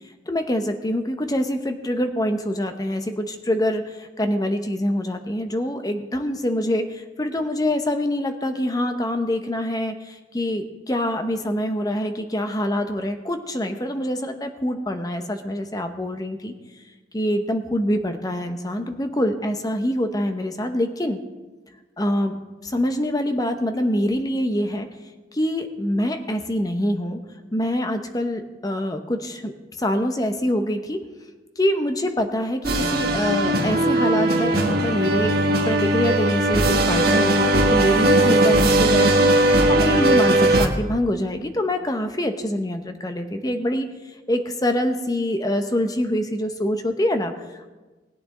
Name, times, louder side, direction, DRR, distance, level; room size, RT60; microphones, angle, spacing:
voice 1, 0.3-16.5 17.1-21.2 22.0-24.9 25.3-27.2 27.5-31.0 31.6-43.9 44.3-47.7, left 1 dB, 20° left, 7 dB, 0.8 m, -25 dB
sound 1, 32.6-40.7, right 1 dB, 55° right, 1.3 m, -19 dB
19.5 x 8.8 x 3.8 m, 1.2 s
head